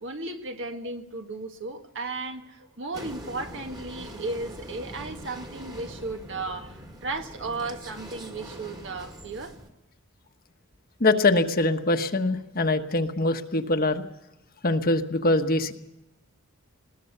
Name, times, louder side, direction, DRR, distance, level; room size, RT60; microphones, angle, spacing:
voice 1, 0.0-9.5, right 3 dB, 55° right, 5 dB, 1.8 m, -35 dB
sound 1, 2.9-9.7, right 1 dB, 20° right, 2.1 m, -43 dB
voice 2, 11.0-14.0 14.6-15.7, left 2 dB, 40° left, 6 dB, 1.3 m, -23 dB
21.0 x 19.5 x 6.8 m, 0.94 s
head